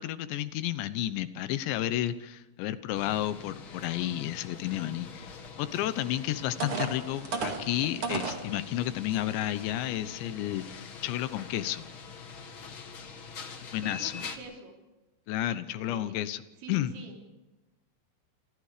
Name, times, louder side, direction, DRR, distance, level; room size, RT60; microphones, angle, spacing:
voice 1, 0.0-11.8 13.7-14.2 15.3-16.4 16.7-16.9, left 13 dB, 80° left, 13 dB, 3.2 m, -32 dB
sound 1, 2.9-14.4, left 5 dB, 50° left, 1.5 m, -45 dB
sound 2, 6.0-6.1 6.6-8.5 9.1-9.2 9.7-9.9, right 4 dB, 40° right, 2.4 m, -33 dB
voice 2, 13.8-14.8 15.8-16.2 16.6-17.2, right 4 dB, 90° right, 1 dB, 6.3 m, -46 dB
27.5 x 27.0 x 5.0 m, 1.0 s
omnidirectional pair, 5.2 m